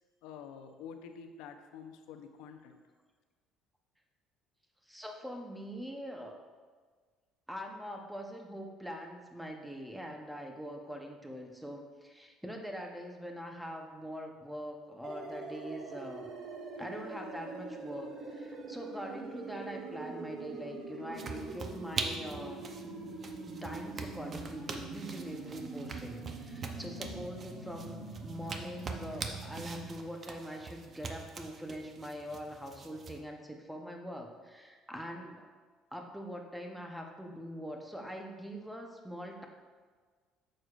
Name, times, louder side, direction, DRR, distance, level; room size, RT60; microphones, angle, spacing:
voice 1, 0.2-2.8, left 7 dB, 85° left, 6 dB, 0.6 m, -48 dB
voice 2, 4.8-6.4 7.5-16.3 16.8-22.6 23.6-35.5 35.9-39.5, equal, ahead, 2 dB, 0.8 m, -43 dB
sound 1, 15.0-29.9, right 3 dB, 60° right, 1.0 m, -44 dB
sound 2, 21.1-33.2, right 4 dB, 35° right, 0.6 m, -43 dB
9.0 x 6.5 x 2.5 m, 1.5 s
cardioid pair, 135°, 0 cm